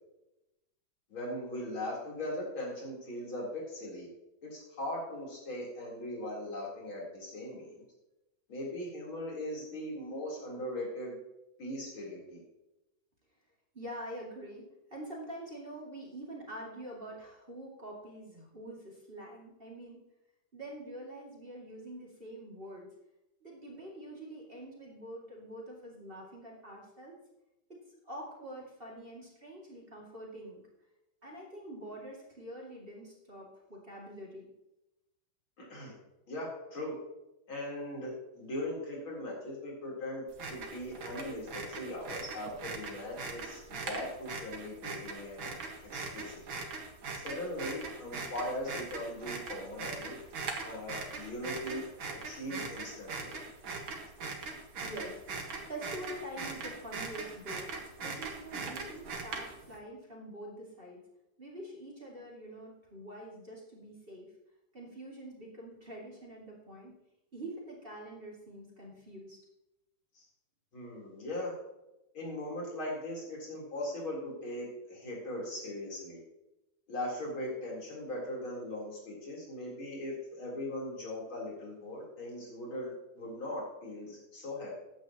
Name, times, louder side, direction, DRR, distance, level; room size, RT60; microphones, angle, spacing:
voice 1, 1.1-4.1 4.4-7.7 8.5-11.1 11.6-12.4 35.6-36.0 36.3-36.9 37.5-40.2 40.5-45.5 45.8-46.6 47.2-50.2 50.6-51.8 52.2-53.3 70.1-70.2 70.7-71.5 72.1-76.2 76.9-84.7, left 1 dB, 75° left, -3 dB, 4.6 m, -39 dB
voice 2, 13.7-20.0 20.5-22.9 23.4-27.2 27.7-27.8 28.0-30.6 31.2-34.5 54.8-57.7 58.0-61.0 61.4-64.3 64.7-66.9 67.3-69.4, right 1 dB, 25° right, -3 dB, 2.7 m, -45 dB
sound 1, 40.3-59.8, right 4 dB, 75° right, 2.4 m, -41 dB
14.5 x 9.4 x 3.0 m, 0.93 s
omnidirectional pair, 2.2 m